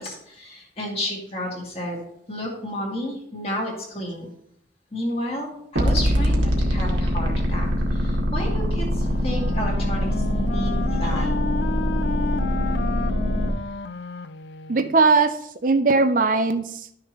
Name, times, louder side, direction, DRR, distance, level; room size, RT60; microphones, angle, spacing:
voice 1, 0.0-2.0 2.3-4.3 4.9-11.3, equal, 30° left, -2 dB, 2.4 m, -31 dB
sound 1, 5.8-13.5, equal, 85° right, 1.8 m, -23 dB
Wind instrument woodwind instrument, 8.9-15.1, left 5 dB, 65° left, 0.4 m, -32 dB
voice 2, 14.7-15.3 15.6-17.0, right 3 dB, 45° right, 8 dB, 0.5 m, -19 dB
12.0 x 6.5 x 3.1 m, 0.72 s
head